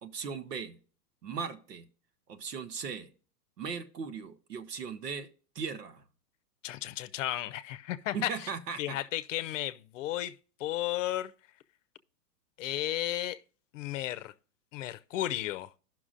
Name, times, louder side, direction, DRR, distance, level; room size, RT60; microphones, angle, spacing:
voice 1, 0.0-0.8 1.2-1.8 2.3-3.1 3.6-5.3 5.5-6.0 8.1-9.0, right 6 dB, 85° right, 1.3 m, -38 dB
voice 2, 6.6-8.3 8.8-10.3 10.6-11.3 12.6-13.4 13.7-14.3 14.7-15.7, left 14 dB, 55° left, 0.7 m, -33 dB
16.0 x 6.0 x 2.5 m
hypercardioid pair, 125°, 48 cm